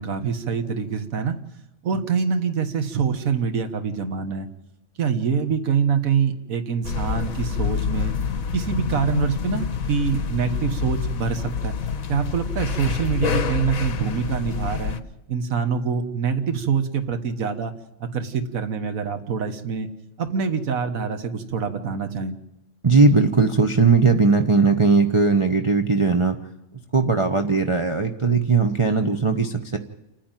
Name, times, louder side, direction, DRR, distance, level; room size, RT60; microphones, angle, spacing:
voice 1, 0.0-1.4 1.8-4.5 5.0-8.1 8.5-11.7 12.1-15.0 15.3-17.7 18.0-19.9 20.2-22.3, right 6 dB, 70° right, 7 dB, 1.8 m, -25 dB
sound 1, 6.8-15.0, left 6 dB, 70° left, 1.5 m, -27 dB
voice 2, 22.8-26.4 26.9-29.8, right 4 dB, 25° right, 6 dB, 0.9 m, -18 dB
29.0 x 10.5 x 9.1 m, 0.91 s
omnidirectional pair, 1.5 m